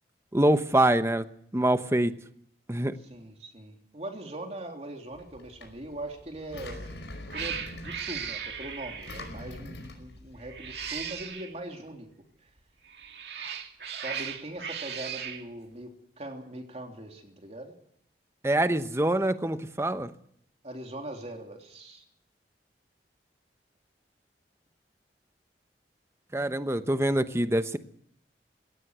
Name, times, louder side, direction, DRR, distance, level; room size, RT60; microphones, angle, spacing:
voice 1, 0.3-1.2 1.5-2.1 2.7-3.0 18.4-20.1 26.3-27.8, right 1 dB, 15° right, 10 dB, 1.0 m, -25 dB
voice 2, 3.0-6.8 7.3-12.1 12.4-12.5 14.0-15.9 16.2-17.7 20.6-22.0, right 1 dB, 35° right, 3 dB, 3.2 m, -41 dB
Engine, 5.1-11.2, left 1 dB, 80° left, 5.1 m, -44 dB
Cat, 6.6-6.9 7.3-9.3 10.4-11.5 12.9-15.4, right 7 dB, 65° right, 2.3 m, -37 dB
19.5 x 17.5 x 8.1 m, 0.67 s
head